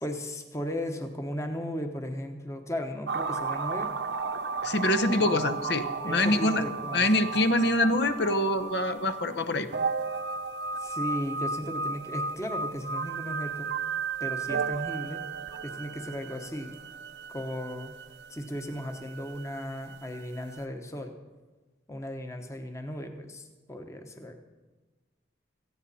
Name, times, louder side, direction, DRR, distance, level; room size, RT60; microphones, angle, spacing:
voice 1, 0.0-3.9 5.1-5.3 6.0-7.1 10.8-13.7 14.2-15.2 15.6-16.8 17.3-17.9 18.3-21.2 21.9-24.4, equal, 15° left, 5 dB, 1.1 m, -36 dB
sound 1, 3.1-20.2 20.5-20.6, right 4 dB, 70° right, 1.0 m, -34 dB
voice 2, 4.6-6.7 6.9-9.7, left 1 dB, 65° left, 11 dB, 0.9 m, -25 dB
17.5 x 14.5 x 4.2 m, 1.3 s
head